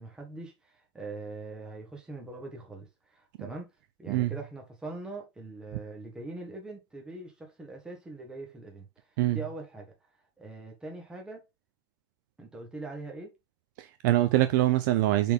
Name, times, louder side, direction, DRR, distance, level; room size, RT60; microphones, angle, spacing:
voice 1, 0.0-3.7 4.0-9.9 10.4-11.5 12.4-13.3, right 2 dB, 5° right, 1.6 m, -42 dB
voice 2, 13.8-15.3, right 15 dB, 45° right, 0.6 m, -24 dB
7.0 x 4.3 x 3.6 m
supercardioid pair, 175°, 14 cm